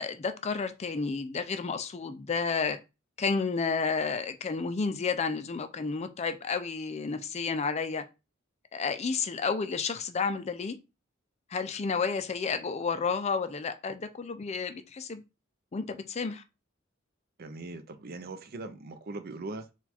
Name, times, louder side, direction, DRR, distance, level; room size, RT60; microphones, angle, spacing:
voice 1, 0.0-2.8 3.2-8.0 8.7-10.8 11.5-15.2 15.7-16.4, left 5 dB, 35° left, 0.4 m, -31 dB
voice 2, 17.4-19.7, right 2 dB, 50° right, 0.5 m, -40 dB
4.3 x 2.3 x 4.1 m
head